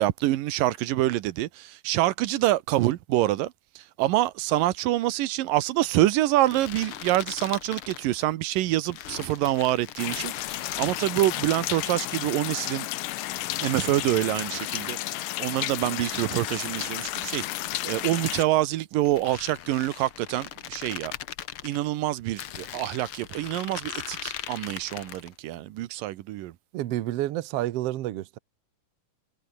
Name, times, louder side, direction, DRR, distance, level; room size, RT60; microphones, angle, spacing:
voice 1, 0.0-12.9 13.6-17.5 17.8-21.1 21.6-26.5, right 15 dB, 90° right, 2.7 m, -26 dB
sound 1, 6.4-8.3 8.9-12.2 13.0-15.1 15.7-18.4 19.1-21.8 22.4-25.3, left 11 dB, 65° left, 1.4 m, -40 dB
sound 2, 10.0-18.4, left 17 dB, 85° left, 2.4 m, -32 dB
voice 2, 26.7-28.4, right 14 dB, 70° right, 1.5 m, -29 dB
omnidirectional pair, 3.8 m